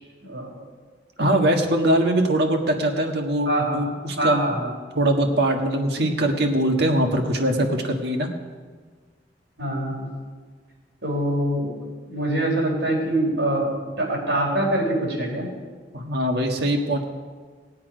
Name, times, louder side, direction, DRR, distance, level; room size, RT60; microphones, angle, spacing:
voice 1, 1.2-4.5 4.9-8.3 15.9-17.0, right 1 dB, 65° right, 3 dB, 1.6 m, -22 dB
voice 2, 3.5-3.8 4.2-4.7 9.6-10.1 11.0-11.7 12.1-13.7 14.0-15.5, right 1 dB, 90° right, -2 dB, 4.6 m, -24 dB
19.0 x 8.7 x 5.1 m, 1.5 s
head